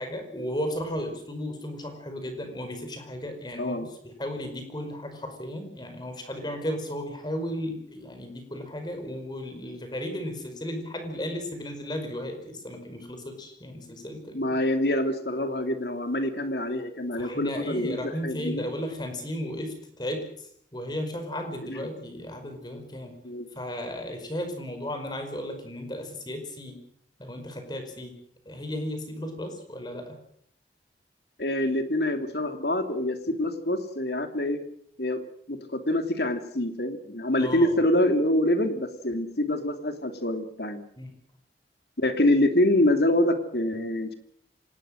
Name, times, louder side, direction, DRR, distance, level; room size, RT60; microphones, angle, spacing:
voice 1, 0.0-14.6 17.2-23.2 23.5-26.8 27.2-28.1 28.5-30.2 37.4-37.7 41.0-41.1, equal, 25° left, 6 dB, 5.1 m, -35 dB
voice 2, 14.3-18.7 21.6-21.9 23.2-23.5 31.4-34.6 35.0-35.2 35.5-40.8 42.0-44.1, left 1 dB, 65° left, 7 dB, 2.9 m, -26 dB
26.0 x 19.5 x 6.6 m, 0.66 s
head